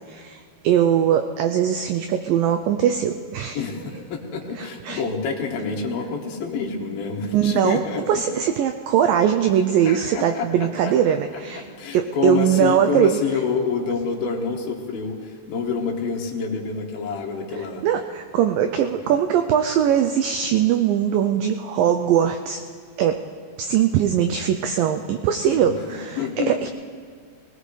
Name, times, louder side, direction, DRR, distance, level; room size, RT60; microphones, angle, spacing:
voice 1, 0.1-0.4 0.6-3.6 4.6-5.0 7.3-7.8 8.1-11.6 11.9-13.2 17.8-22.6 23.0-23.2 23.6-26.7, right 9 dB, 85° right, 6 dB, 2.0 m, -21 dB
voice 2, 3.5-8.4 9.8-10.7 11.3-11.4 11.8-17.8 19.0-19.2 25.5-25.8 26.2-26.7, left 5 dB, 70° left, 0 dB, 3.1 m, -27 dB
21.0 x 18.5 x 3.3 m, 2.2 s
omnidirectional pair, 4.6 m